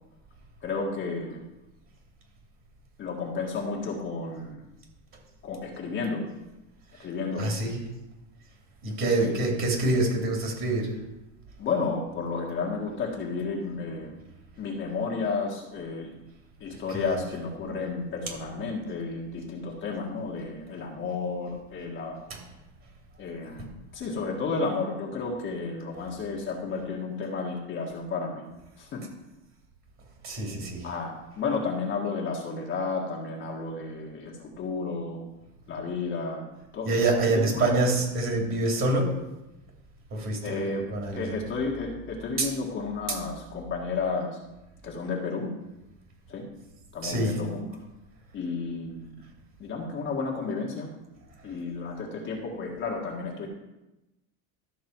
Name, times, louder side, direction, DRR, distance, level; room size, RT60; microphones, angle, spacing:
voice 1, 0.6-1.4 3.0-4.6 5.4-6.3 7.0-7.5 9.2-9.4 11.6-14.2 14.6-16.1 16.6-22.2 23.2-28.4 28.8-29.1 30.8-35.2 35.7-36.5 36.7-36.9 37.3-37.7 40.4-40.9 41.1-44.4 44.8-45.5 46.3-46.5 46.9-47.7 48.3-49.2 49.6-50.9 51.4-53.5, left 4 dB, 30° left, -1 dB, 1.7 m, -32 dB
voice 2, 7.4-7.8 8.8-10.9 16.9-17.1 30.2-30.9 36.9-39.1 40.1-41.4 42.4-42.5 47.0-47.4, right 2 dB, 35° right, 0 dB, 2.8 m, -26 dB
12.5 x 6.6 x 4.6 m, 0.96 s
cardioid pair, 165°, 37 cm